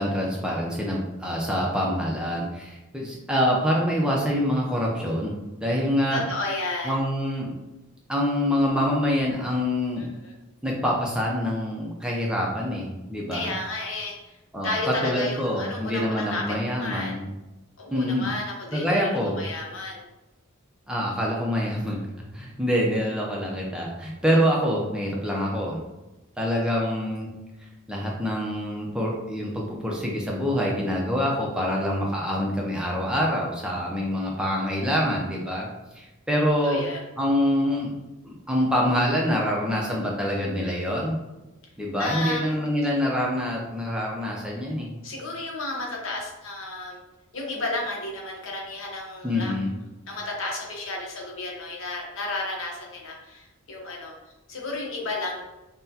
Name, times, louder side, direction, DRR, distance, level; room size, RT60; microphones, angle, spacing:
voice 1, 0.0-6.2 6.8-7.5 8.1-10.0 10.6-13.5 14.5-17.3 17.9-18.3 18.7-19.4 20.9-22.0 22.3-25.8 26.4-27.3 27.9-35.7 36.0-36.8 37.2-37.9 38.2-41.2 41.8-44.9 49.2-49.8, equal, 5° right, -3 dB, 0.5 m, -25 dB
voice 2, 6.1-7.0 10.0-10.3 13.3-14.4 14.6-17.2 17.8-20.0 36.6-37.0 42.0-42.6 45.0-47.0 47.3-49.5 50.1-54.1 54.5-55.4, left 2 dB, 65° left, -1 dB, 0.9 m, -32 dB
5.6 x 2.1 x 2.8 m, 1.0 s
head